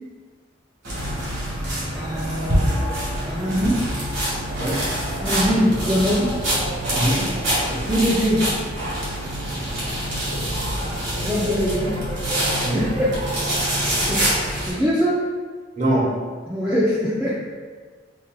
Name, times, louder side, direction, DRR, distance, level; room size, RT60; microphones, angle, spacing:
sound 1, 0.8-14.7, equal, 80° right, 1.4 m, -25 dB
voice 1, 1.9-3.0 3.2-3.8 5.2-6.3 7.9-8.5 10.8-11.9 12.4-13.1 14.1-14.3 14.7-15.2 16.5-17.4, equal, 10° right, -7 dB, 0.4 m, -22 dB
voice 2, 6.9-7.3 7.6-7.8 12.6-12.8 15.8-16.2, right 1 dB, 40° right, -5 dB, 1.0 m, -23 dB
5.6 x 2.6 x 2.2 m, 1.5 s
head